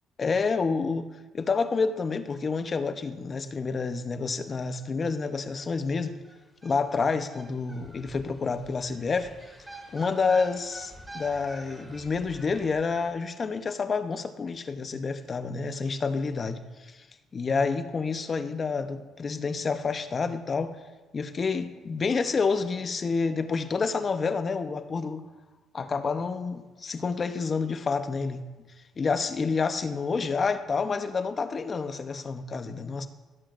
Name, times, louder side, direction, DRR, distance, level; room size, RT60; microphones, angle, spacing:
voice 1, 0.2-1.1 1.3-6.1 6.6-9.3 9.9-17.1 17.3-20.8 21.1-25.2 25.7-28.4 29.0-33.1, left 4 dB, 40° left, 10 dB, 0.8 m, -28 dB
Peddlers Barranquilla Colombia, 4.5-4.6 4.8-4.9 5.2-13.1, right 1 dB, 15° right, 2.4 m, -47 dB
16.5 x 7.8 x 2.5 m, 1.2 s
cardioid pair, 85°, 0 cm